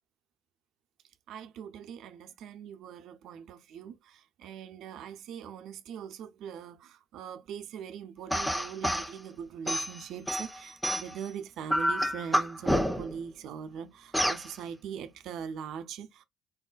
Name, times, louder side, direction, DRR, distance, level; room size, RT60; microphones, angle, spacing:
voice 1, 1.3-16.2, right 7 dB, 60° right, 0.5 m, -41 dB
sound 1, 8.3-9.1 9.7-11.3 11.7-13.2 14.1-14.5, equal, 5° left, 0.5 m, -28 dB
4.0 x 2.1 x 2.3 m
hypercardioid pair, 60°, 0 cm